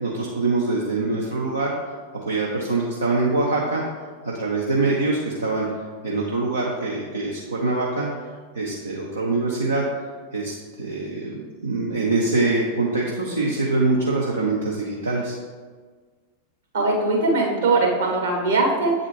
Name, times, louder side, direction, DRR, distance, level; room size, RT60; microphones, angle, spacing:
voice 1, 0.0-1.9 2.3-3.8 4.2-5.7 6.0-8.1 8.5-9.8 10.3-15.3, right 3 dB, 75° right, -3 dB, 0.7 m, -24 dB
voice 2, 16.7-18.9, right 3 dB, 60° right, -1 dB, 1.4 m, -20 dB
8.1 x 4.0 x 3.2 m, 1.5 s
figure-of-eight pair, 90°, 0 cm